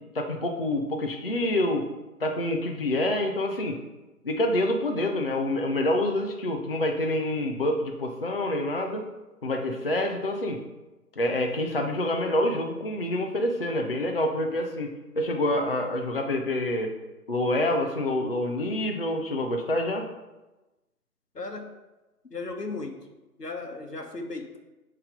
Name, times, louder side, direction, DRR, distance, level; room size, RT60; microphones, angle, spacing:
voice 1, 0.1-1.8 2.2-3.8 4.2-9.1 9.4-10.6 11.2-16.9 17.3-20.1, left 1 dB, 40° left, 3 dB, 0.5 m, -27 dB
voice 2, 21.3-21.7 22.3-23.1 23.4-24.6, left 3 dB, 90° left, 4 dB, 1.1 m, -36 dB
6.8 x 3.3 x 5.1 m, 1.1 s
figure-of-eight pair, 145°, 47 cm